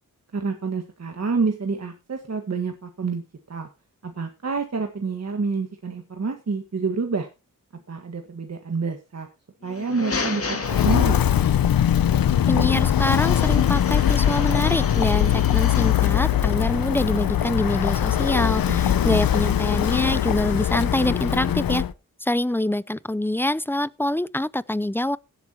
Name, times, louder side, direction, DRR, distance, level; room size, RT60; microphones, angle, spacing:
voice 1, 0.3-3.2 3.5-3.7 4.0-7.3 7.9-9.3 9.6-11.2 18.7-19.0, right 4 dB, 50° right, 1.7 m, -28 dB
sound 1, 9.6-11.5 13.1-16.1, left 4 dB, 40° left, 2.2 m, -33 dB
Walk footsteps, 10.6-21.9, left 10 dB, 85° left, 0.8 m, -21 dB
voice 2, 12.5-21.8 22.2-25.2, left 1 dB, 5° left, 0.5 m, -25 dB
17.0 x 8.0 x 3.0 m
wide cardioid pair, 80°, 34 cm